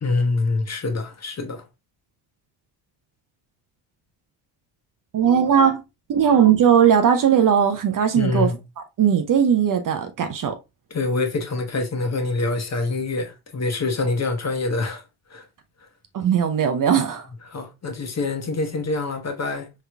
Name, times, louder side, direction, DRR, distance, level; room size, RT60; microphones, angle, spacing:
voice 1, 0.0-1.6 8.1-8.6 10.9-15.0 15.3-15.4 17.5-19.7, left 3 dB, 30° left, 1.1 m, -25 dB
voice 2, 5.1-5.8 6.1-8.5 9.0-10.5 16.1-17.3, right 8 dB, 40° right, 0.7 m, -18 dB
3.8 x 3.2 x 2.3 m
supercardioid pair, 65°, 49 cm